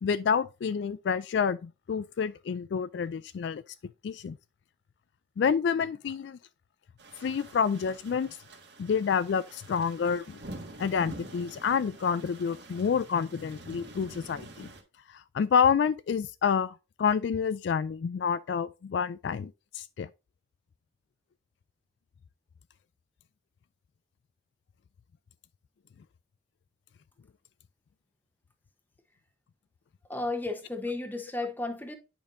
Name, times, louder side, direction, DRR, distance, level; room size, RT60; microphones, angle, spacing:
voice 1, 0.0-3.6 4.0-4.4 5.4-6.4 7.2-8.3 8.8-10.4 10.8-14.7 15.3-20.1, left 6 dB, 65° left, 0.3 m, -28 dB
sound 1, 7.0-14.8, right 2 dB, 60° right, 1.5 m, -47 dB
voice 2, 30.1-31.9, left 2 dB, 10° left, 0.9 m, -33 dB
8.7 x 5.3 x 2.6 m
head